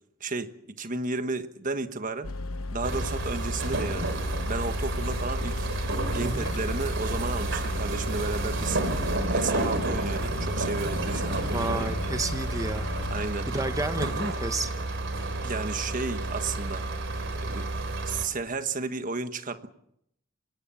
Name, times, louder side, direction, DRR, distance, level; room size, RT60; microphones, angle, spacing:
voice 1, 0.2-2.3 2.7-4.1 4.5-5.7 6.1-8.8 9.3-11.9 13.1-13.5 15.4-16.9 17.3-17.7 18.0-19.7, right 3 dB, 40° right, 1.4 m, -33 dB
sound 1, 2.2-13.3, left 2 dB, 85° left, 1.1 m, -36 dB
sound 2, 2.8-18.3, right 2 dB, 60° right, 3.8 m, -30 dB
voice 2, 6.2-6.5 11.4-12.9 13.5-14.7, right 2 dB, 15° right, 0.9 m, -31 dB
25.5 x 19.0 x 7.1 m
head